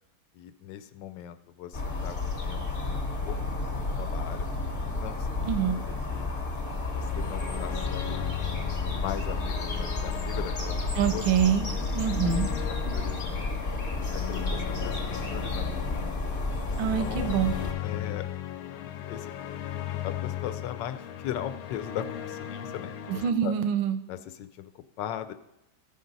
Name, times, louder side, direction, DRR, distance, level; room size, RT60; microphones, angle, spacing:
voice 1, 0.3-4.5 4.9-5.5 6.1-6.3 6.9-8.2 9.0-11.2 11.7-11.8 12.9-13.6 14.1-16.1 16.7-17.3 17.8-18.2 19.1-19.3 20.0-23.5 24.1-25.3, left 10 dB, 75° left, 11 dB, 1.2 m, -39 dB
sound 1, 1.7-17.7, left 3 dB, 35° left, 1.1 m, -31 dB
voice 2, 5.5-5.8 11.0-11.7 11.9-12.5 16.8-17.5 23.1-24.0, right 8 dB, 90° right, 9 dB, 1.5 m, -25 dB
sound 2, 6.8-23.3, left 11 dB, 90° left, 1.4 m, -38 dB
14.5 x 5.2 x 3.9 m, 0.86 s
omnidirectional pair, 2.1 m